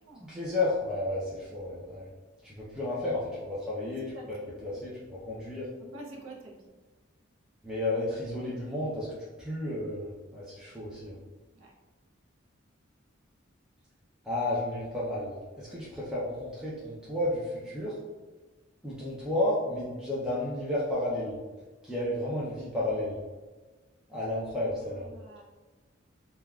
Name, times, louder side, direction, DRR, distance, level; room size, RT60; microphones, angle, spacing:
voice 1, 0.2-2.1 2.4-5.7 7.6-9.1 9.4-11.1 14.2-18.0 18.8-21.4 21.8-23.2 24.1-25.1, left 1 dB, 5° right, -9 dB, 0.4 m, -32 dB
voice 2, 5.8-6.7 11.5-11.7 24.8-25.4, right 2 dB, 80° right, -1 dB, 0.6 m, -47 dB
3.3 x 2.2 x 2.2 m, 1.3 s
head